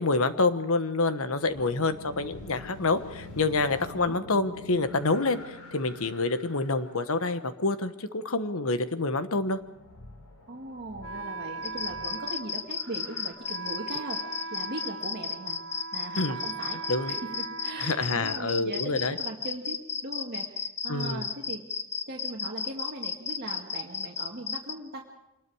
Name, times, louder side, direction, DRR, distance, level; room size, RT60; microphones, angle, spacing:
voice 1, 0.0-9.6 16.2-16.4 16.9-17.1 17.8-19.2 20.9-21.2, left 3 dB, 70° left, 11 dB, 1.3 m, -27 dB
sound 1, 1.4-7.4 9.4-13.3, left 3 dB, 85° left, 4.8 m, -47 dB
voice 2, 10.5-14.2 14.5-15.6 15.9-16.8 17.1-21.6 22.1-25.0, right 2 dB, 50° right, 0 dB, 2.0 m, -39 dB
Wind instrument woodwind instrument, 11.0-18.7, right 4 dB, 70° right, 1.9 m, -40 dB
sound 2, 11.6-24.7, left 6 dB, 30° left, 1.1 m, -33 dB
26.0 x 20.5 x 4.9 m, 0.92 s
head